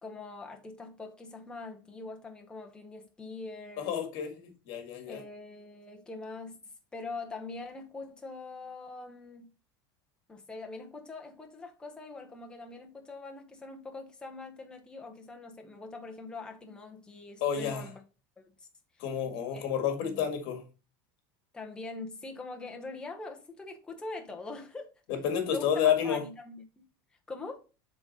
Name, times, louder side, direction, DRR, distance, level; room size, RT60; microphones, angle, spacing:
voice 1, 0.0-3.9 5.1-6.6 6.9-9.5 10.3-18.0 18.4-18.7 19.5-19.7 20.0-20.3 21.5-25.0 25.5-26.9 27.3-27.6, left 3 dB, 10° left, 0.9 m, -43 dB
voice 2, 3.8-5.2 17.4-17.8 19.0-20.6 25.1-26.2, left 8 dB, 50° left, 1.8 m, -30 dB
7.7 x 3.8 x 4.1 m
supercardioid pair, 170°, 11 cm